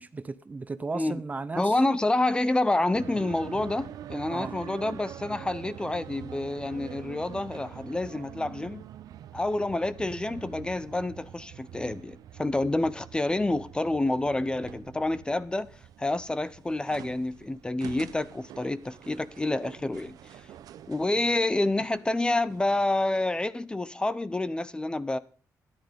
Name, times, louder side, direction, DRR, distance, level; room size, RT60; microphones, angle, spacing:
voice 1, 0.0-1.8 4.3-4.5, right 3 dB, 25° right, 0.6 m, -35 dB
voice 2, 1.6-8.8 9.3-15.7 16.0-20.2 20.9-25.2, left 2 dB, 15° left, 0.7 m, -28 dB
sound 1, 2.9-22.8, right 11 dB, 85° right, 0.7 m, -45 dB
13.0 x 11.0 x 5.2 m
cardioid pair, 110°, 6 cm